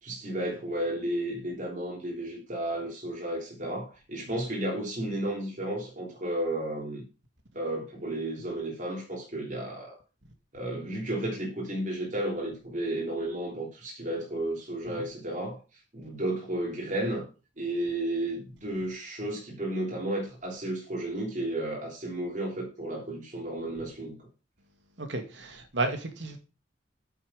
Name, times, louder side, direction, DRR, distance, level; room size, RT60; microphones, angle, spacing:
voice 1, 0.0-7.0 7.5-10.0 10.5-15.6 15.9-17.2 17.6-24.2, right 1 dB, 45° right, 3.3 m, -33 dB
voice 2, 25.0-26.4, right 2 dB, 85° right, 2.3 m, -32 dB
8.7 x 7.2 x 5.7 m
head